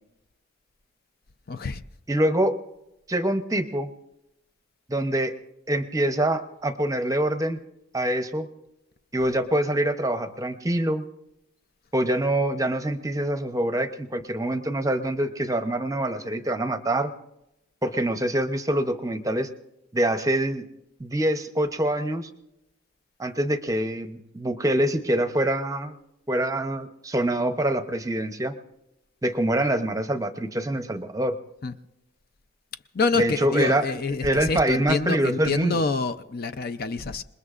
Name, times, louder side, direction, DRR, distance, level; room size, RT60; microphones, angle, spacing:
voice 1, 1.5-1.8 31.6-31.7 32.9-37.2, left 3 dB, 45° left, 0.5 m, -27 dB
voice 2, 2.1-2.6 3.1-3.9 4.9-5.3 5.7-7.6 7.9-8.5 9.1-11.0 11.9-17.1 17.8-19.5 19.9-20.7 21.0-22.3 23.2-25.9 26.3-28.6 29.2-31.4 33.2-35.8, right 1 dB, 15° right, 0.7 m, -25 dB
27.0 x 20.5 x 2.5 m
head